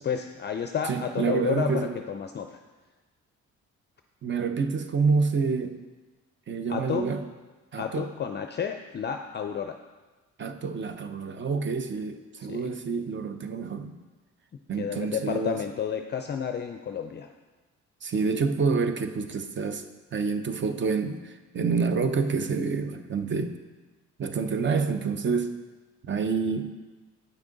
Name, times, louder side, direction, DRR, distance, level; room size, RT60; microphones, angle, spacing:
voice 1, 0.0-2.6 6.7-7.1 7.8-9.7 12.5-12.7 14.8-17.3, left 7 dB, 35° left, 6 dB, 0.4 m, -31 dB
voice 2, 0.9-1.9 4.2-5.7 6.5-7.2 7.7-8.1 10.4-14.0 14.7-15.6 18.0-19.8 20.1-23.6 24.2-25.5 26.0-26.7, right 5 dB, 40° right, 8 dB, 0.7 m, -28 dB
8.7 x 6.1 x 3.9 m, 1.2 s
cardioid pair, 90°, 30 cm